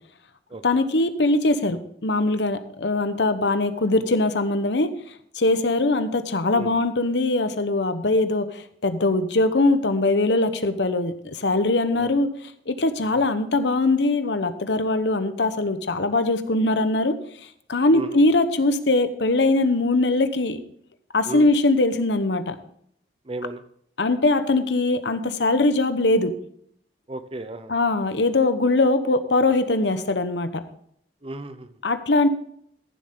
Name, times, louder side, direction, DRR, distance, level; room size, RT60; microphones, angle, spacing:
voice 1, 0.6-4.9 5.3-12.3 12.7-17.1 17.7-20.6 21.1-22.6 24.0-26.3 27.7-30.6 31.8-32.3, left 2 dB, 80° left, 11 dB, 1.0 m, -21 dB
voice 2, 23.2-23.6 27.1-27.7 31.2-31.7, right 2 dB, 30° right, 11 dB, 0.7 m, -34 dB
14.5 x 7.6 x 3.7 m, 0.68 s
head